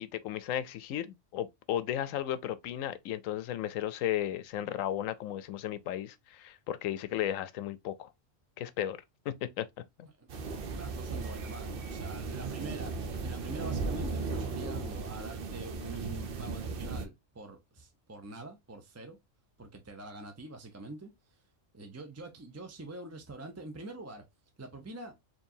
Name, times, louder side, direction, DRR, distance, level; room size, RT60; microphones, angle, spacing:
voice 1, 0.0-8.1 8.6-9.0 9.3-9.7 10.0-10.1, left 11 dB, 85° left, 1.0 m, -34 dB
voice 2, 10.2-19.2 19.6-21.4 21.7-24.2 24.6-25.1, right 2 dB, 20° right, 0.5 m, -45 dB
sound 1, 10.3-17.0, right 4 dB, 55° right, 0.8 m, -36 dB
4.5 x 2.9 x 2.7 m
omnidirectional pair, 1.3 m